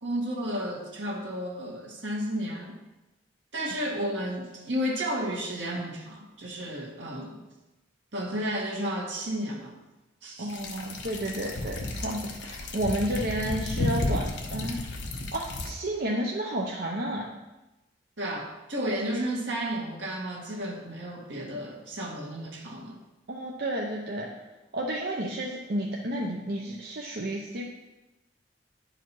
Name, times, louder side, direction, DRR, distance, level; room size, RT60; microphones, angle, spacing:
voice 1, 0.0-2.8 3.5-7.5 8.1-9.8 10.2-10.7 18.2-23.0, equal, 75° right, -1 dB, 1.8 m, -32 dB
voice 2, 10.4-14.8 15.3-17.3 18.7-18.9 23.3-24.3 24.7-27.6, right 1 dB, 60° right, -2 dB, 0.8 m, -31 dB
sound 1, 10.5-15.7, left 2 dB, 65° left, 1.1 m, -32 dB
10.5 x 5.0 x 4.6 m, 1.1 s
head